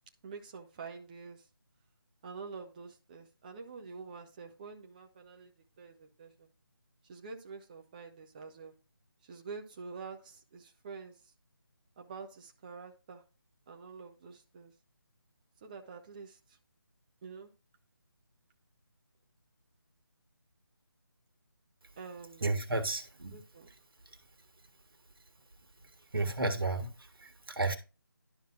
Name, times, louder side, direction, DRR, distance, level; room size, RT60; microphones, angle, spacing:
voice 1, 0.2-1.5 2.2-5.5 5.8-6.5 7.0-8.7 9.2-11.3 12.0-13.2 13.7-14.7 15.6-16.6 17.2-17.5 22.0-22.5 23.3-23.7, right 5 dB, 20° right, 0.6 m, -47 dB
voice 2, 22.4-23.4 26.1-27.8, right 2 dB, 75° right, 1.5 m, -32 dB
11.5 x 5.6 x 2.4 m
figure-of-eight pair, 160°, 12 cm